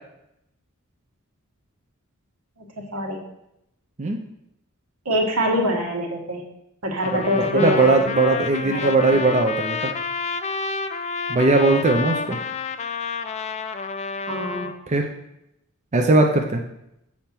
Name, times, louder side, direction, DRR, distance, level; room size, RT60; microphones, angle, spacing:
voice 1, 2.6-3.2 5.0-6.5 6.8-7.9 8.7-8.9 14.3-14.8, equal, 80° right, 1 dB, 1.5 m, -24 dB
Trumpet, 7.0-14.7, left 5 dB, 30° left, 0.3 m, -29 dB
voice 2, 7.0-9.9 11.3-12.4 14.9-15.1 15.9-16.6, right 2 dB, 30° right, 3 dB, 0.5 m, -19 dB
7.1 x 4.4 x 5.9 m, 0.84 s
head